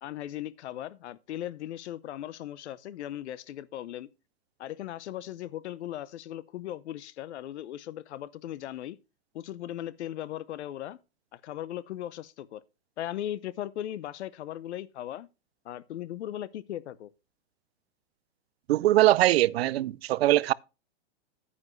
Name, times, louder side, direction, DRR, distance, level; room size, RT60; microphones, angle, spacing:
voice 1, 0.0-4.1 4.6-9.0 9.3-11.0 11.3-12.6 13.0-15.3 15.6-17.1, left 12 dB, 80° left, 0.8 m, -38 dB
voice 2, 18.7-20.5, right 15 dB, 65° right, 0.5 m, -22 dB
9.9 x 9.6 x 3.1 m
supercardioid pair, 175°, 33 cm